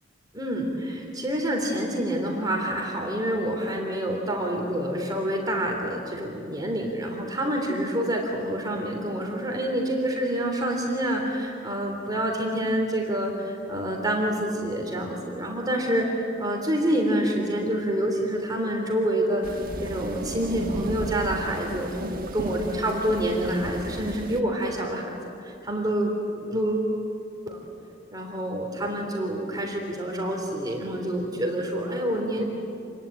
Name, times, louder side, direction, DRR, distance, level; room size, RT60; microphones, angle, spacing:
voice 1, 0.3-26.1 26.5-26.9 27.5-27.6 28.1-32.4, right 1 dB, 20° right, 0 dB, 3.4 m, -27 dB
sound 1, 19.4-24.4, right 2 dB, 50° right, 1.4 m, -34 dB
28.0 x 21.0 x 9.1 m, 2.9 s
head